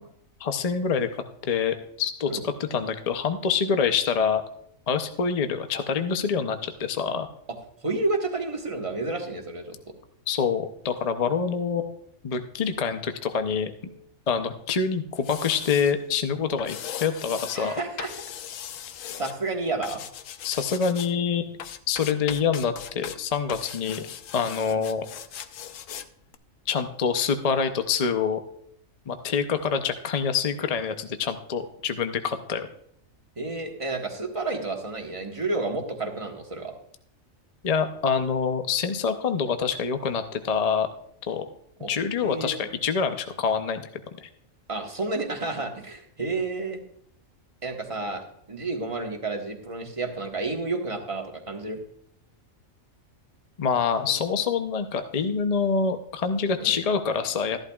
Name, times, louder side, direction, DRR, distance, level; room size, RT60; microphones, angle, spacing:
voice 1, 0.4-1.1 1.4-4.4 4.9-7.3 10.3-12.0 12.2-13.7 14.3-17.7 20.4-21.6 21.9-24.1 24.3-25.1 26.7-28.4 29.1-32.7 37.6-40.9 41.3-41.5 41.9-43.8 44.2-44.3 53.6-57.6, left 6 dB, 40° left, 8 dB, 0.6 m, -26 dB
voice 2, 7.8-9.7 17.5-18.1 19.2-20.0 33.4-36.7 41.8-41.9 42.2-42.7 44.7-46.8 47.6-51.8 54.1-54.2 56.6-56.8, right 3 dB, 25° right, 2 dB, 1.3 m, -30 dB
sound 1, 15.2-15.9 16.6-17.6 18.0-19.3 19.8-21.1 21.6-23.2 23.5-26.1 26.3-26.4, left 10 dB, 75° left, 1.0 m, -39 dB
13.5 x 11.5 x 2.4 m, 0.70 s
omnidirectional pair, 1.4 m